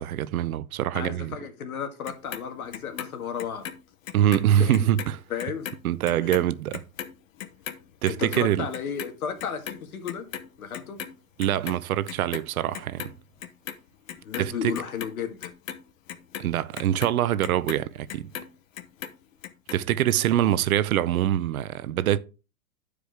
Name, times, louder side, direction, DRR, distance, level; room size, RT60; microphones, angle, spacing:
voice 1, 0.0-1.4 4.1-5.2 5.8-6.8 8.0-8.7 11.4-13.1 14.4-14.7 16.4-18.3 19.7-22.2, right 11 dB, 80° right, 0.7 m, -24 dB
voice 2, 0.9-3.6 4.7-4.9 5.3-5.7 6.2-6.3 8.1-10.3 10.6-11.0 14.2-15.5, left 7 dB, 90° left, 1.8 m, -33 dB
Clock, 2.1-4.5 4.7-11.1 11.4-12.5 12.7-13.8 14.1-18.5 18.8-19.8 20.1-20.2, left 10 dB, 65° left, 1.0 m, -38 dB
11.5 x 4.9 x 3.4 m
hypercardioid pair, 150°, 42 cm